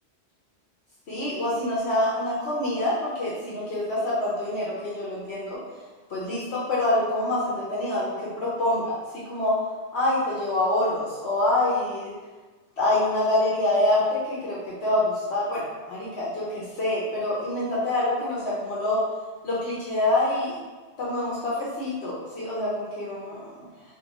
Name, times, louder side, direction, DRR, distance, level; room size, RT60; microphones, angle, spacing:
voice 1, 1.1-5.6 6.1-9.0 9.2-9.5 9.9-12.1 12.8-19.0 19.4-20.5 21.0-23.4, left 1 dB, 70° left, -7 dB, 1.0 m, -26 dB
4.2 x 2.8 x 2.8 m, 1.3 s
omnidirectional pair, 1.2 m